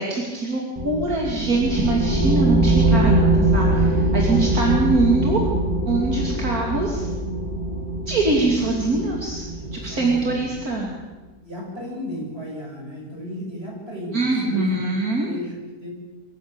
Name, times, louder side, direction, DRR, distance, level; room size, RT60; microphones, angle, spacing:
voice 1, 0.0-5.4 5.9-7.1 8.1-9.4 9.7-10.9 14.1-15.3, right 2 dB, 60° right, -1 dB, 3.3 m, -23 dB
sound 1, 0.8-10.8, right 2 dB, 20° right, 2.7 m, -22 dB
voice 2, 4.4-4.8 9.5-10.4 11.4-15.9, left 1 dB, 35° right, -1 dB, 7.3 m, -35 dB
24.5 x 15.5 x 8.9 m, 1.2 s
omnidirectional pair, 1.7 m